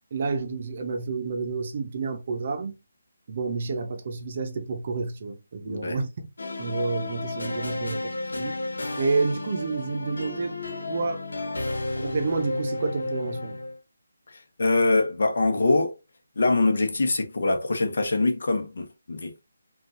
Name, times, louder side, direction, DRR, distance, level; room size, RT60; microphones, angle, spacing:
voice 1, 0.1-2.8 3.3-6.3 6.6-8.6 9.0-10.6 10.9-11.2 12.0-13.6, right 4 dB, 35° right, 0.8 m, -29 dB
voice 2, 5.6-6.0 14.6-15.9 16.4-19.4, left 2 dB, 60° left, 1.1 m, -23 dB
sound 1, 6.4-13.8, left 2 dB, 90° left, 1.3 m, -32 dB
5.3 x 2.6 x 2.9 m
hypercardioid pair, 170°, 0 cm